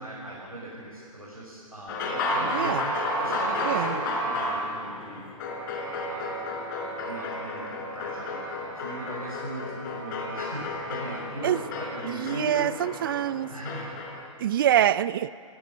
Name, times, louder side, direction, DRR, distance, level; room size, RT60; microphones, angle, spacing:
voice 1, 0.0-2.8 3.2-5.3 6.0-6.5 7.0-12.7 13.5-13.9, right 1 dB, 90° right, -6 dB, 6.8 m, -38 dB
sound 1, 1.9-14.2, left 1 dB, 35° left, 4.6 m, -32 dB
voice 2, 2.5-2.9 3.6-4.0 11.4-11.6 12.1-13.5 14.4-15.3, right 11 dB, 40° right, 17 dB, 0.6 m, -25 dB
28.5 x 17.0 x 8.8 m, 2.2 s
figure-of-eight pair, 125°, 18 cm